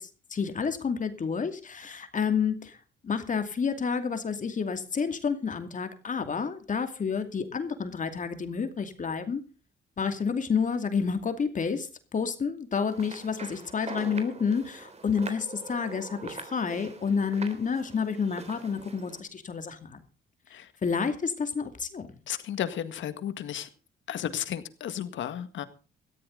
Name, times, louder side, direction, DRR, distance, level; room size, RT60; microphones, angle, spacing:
voice 1, 0.0-2.8 3.0-9.4 10.0-20.0 20.8-22.1, left 6 dB, 40° left, 2.5 m, -30 dB
sound 1, 12.9-19.2, right 4 dB, 35° right, 3.5 m, -43 dB
voice 2, 22.3-23.7 24.1-25.7, left 10 dB, 70° left, 1.9 m, -33 dB
18.0 x 14.0 x 3.9 m
cardioid pair, 90°, 20 cm